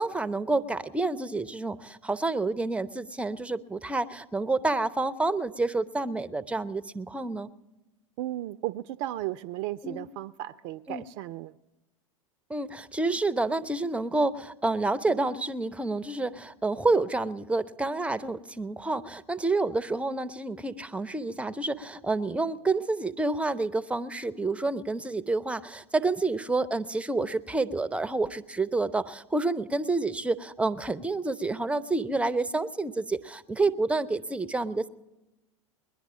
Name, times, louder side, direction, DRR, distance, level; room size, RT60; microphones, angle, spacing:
voice 1, 0.0-7.5 9.8-10.1 10.9-11.0 12.5-34.9, right 3 dB, 5° right, 14 dB, 0.6 m, -29 dB
voice 2, 8.2-11.5, right 15 dB, 50° right, 12 dB, 0.5 m, -35 dB
20.5 x 11.0 x 6.2 m, 1.0 s
hypercardioid pair, 95°, 17 cm